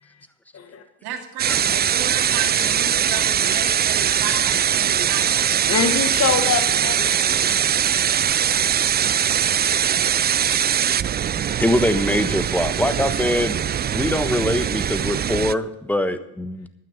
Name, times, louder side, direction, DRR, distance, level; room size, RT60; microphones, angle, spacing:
voice 1, 1.0-5.3, right 8 dB, 80° right, 3 dB, 2.4 m, -32 dB
sound 1, 1.4-15.5, right 9 dB, 25° right, 0.4 m, -21 dB
voice 2, 5.7-7.6, left 6 dB, 40° left, 6 dB, 1.7 m, -24 dB
voice 3, 11.6-13.5 13.9-16.7, left 1 dB, 5° left, 11 dB, 1.2 m, -23 dB
12.0 x 9.3 x 6.6 m, 0.86 s
supercardioid pair, 85°, 38 cm